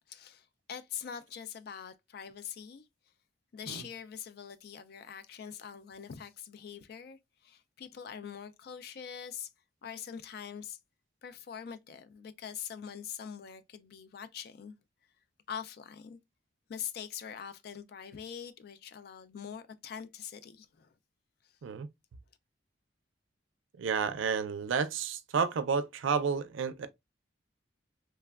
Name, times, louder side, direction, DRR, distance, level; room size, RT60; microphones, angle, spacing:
voice 1, 0.1-2.8 3.5-9.5 9.8-10.8 11.2-14.7 15.5-16.2 16.7-20.9, left 8 dB, 55° left, 0.3 m, -43 dB
voice 2, 23.8-26.9, right 6 dB, 85° right, 0.4 m, -31 dB
3.2 x 2.1 x 2.2 m
head